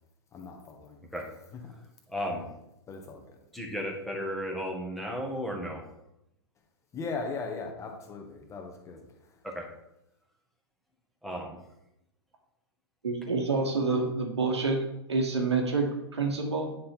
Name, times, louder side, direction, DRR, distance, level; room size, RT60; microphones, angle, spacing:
voice 1, 0.3-1.0 1.5-1.7 2.9-3.4 6.9-9.1, left 4 dB, 20° left, 2 dB, 1.6 m, -38 dB
voice 2, 2.1-2.5 3.5-5.8 9.4-9.7 11.2-11.6, equal, ahead, 0 dB, 1.6 m, -34 dB
voice 3, 13.0-14.8 15.1-16.7, right 3 dB, 80° right, 2 dB, 1.8 m, -27 dB
9.7 x 3.9 x 4.5 m, 0.85 s
figure-of-eight pair, 105°, 14 cm